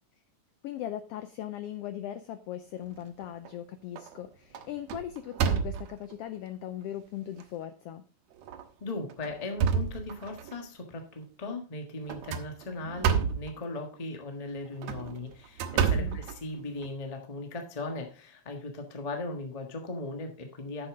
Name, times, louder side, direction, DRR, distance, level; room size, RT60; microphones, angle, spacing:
voice 1, 0.6-8.0 15.9-16.2, left 11 dB, 80° left, 11 dB, 1.4 m, -39 dB
sound 1, 2.9-3.5 4.0-4.2 4.5-6.1 6.8-6.9 7.4-7.5 8.4-8.6 9.1-10.5 12.1-13.5 14.7-16.9, right 7 dB, 75° right, 2.0 m, -30 dB
voice 2, 8.8-20.9, left 2 dB, 25° left, 3 dB, 0.8 m, -38 dB
10.0 x 7.0 x 3.7 m, 0.35 s
omnidirectional pair, 3.3 m